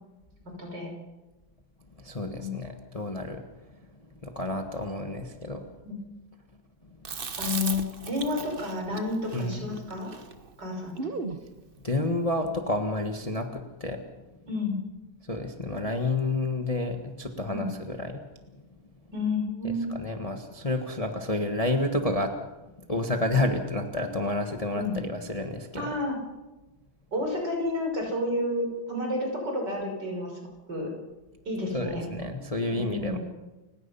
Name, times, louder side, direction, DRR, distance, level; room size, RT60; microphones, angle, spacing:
voice 1, 0.6-0.9 2.4-2.5 5.8-6.0 7.4-10.1 10.6-11.1 14.5-14.8 17.5-17.7 19.1-19.9 24.7-25.0 25.7-26.2 27.1-30.4 30.7-30.9 31.4-32.0 32.7-33.2, left 2 dB, 60° right, 1 dB, 6.5 m, -30 dB
voice 2, 2.0-3.4 4.2-5.6 9.3-9.7 11.8-14.0 15.2-18.2 19.6-22.3 22.9-25.8 31.7-33.2, left 2 dB, 20° left, 4 dB, 1.4 m, -30 dB
Chewing mastication, 7.0-11.4, right 4 dB, 35° right, 1.1 m, -37 dB
30.0 x 17.0 x 5.7 m, 1.1 s
omnidirectional pair, 2.2 m